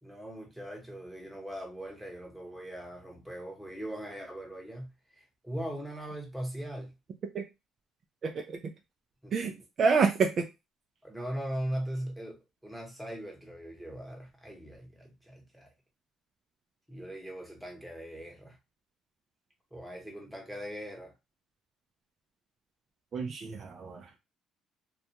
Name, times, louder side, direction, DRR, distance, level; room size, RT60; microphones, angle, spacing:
voice 1, 0.0-6.9 9.2-9.5 11.0-15.7 16.9-18.6 19.7-21.1, right 1 dB, ahead, 1.0 m, -40 dB
voice 2, 8.2-8.6 9.3-10.4 23.1-24.1, right 5 dB, 45° right, 0.4 m, -28 dB
2.4 x 2.2 x 2.8 m
cardioid pair, 110°, 0 cm